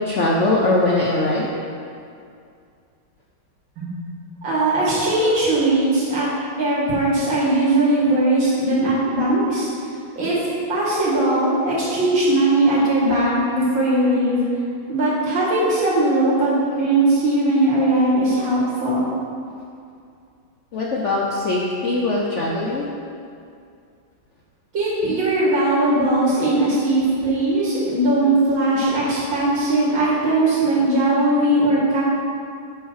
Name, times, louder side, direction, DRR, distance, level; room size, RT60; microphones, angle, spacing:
voice 1, 0.0-1.5 20.7-22.9, left 2 dB, 65° left, -3 dB, 0.7 m, -21 dB
voice 2, 4.4-6.3 6.6-9.7 10.2-10.4 10.7-14.4 14.9-19.0 24.7-32.0, right 1 dB, 85° right, -8 dB, 2.9 m, -19 dB
7.1 x 4.6 x 6.3 m, 2.4 s
omnidirectional pair, 2.1 m